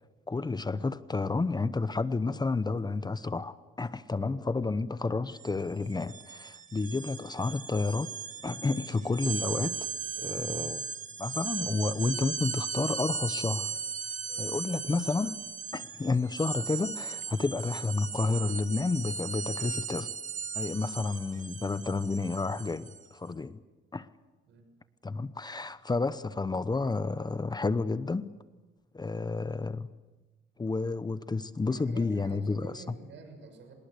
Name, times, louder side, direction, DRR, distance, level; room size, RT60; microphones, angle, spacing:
voice 1, 0.3-8.1 8.4-9.8 10.2-10.9 11.2-13.8 14.4-15.4 15.7-20.1 20.5-23.6 23.9-24.1 25.0-28.3 28.9-29.9 30.6-32.7, left 3 dB, 20° left, 0.8 m, -31 dB
sound 1, 5.3-5.5 5.8-23.1, right 6 dB, 40° right, 1.7 m, -37 dB
voice 2, 14.2-14.6 20.5-20.8 24.4-24.7 31.7-33.7, right 4 dB, 70° right, 6.7 m, -50 dB
25.5 x 20.5 x 8.3 m
cardioid pair, 90°, 20 cm